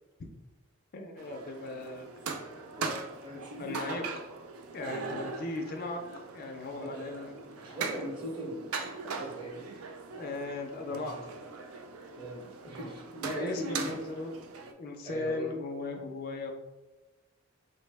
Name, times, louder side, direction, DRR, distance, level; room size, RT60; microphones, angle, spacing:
voice 1, 0.9-2.5 3.3-4.0 4.7-6.0 6.3-7.7 10.1-11.2 13.3-14.4 14.8-16.5, left 3 dB, 45° left, 4 dB, 0.3 m, -38 dB
sound 1, 1.2-14.7, right 4 dB, 85° right, 0.4 m, -41 dB
voice 2, 2.8-4.0 4.9-5.3 6.8-9.7 10.9-11.2 12.1-14.0 15.0-15.5 15.9-16.0, right 1 dB, 25° right, -2 dB, 0.8 m, -40 dB
4.0 x 2.0 x 3.2 m, 1.2 s
head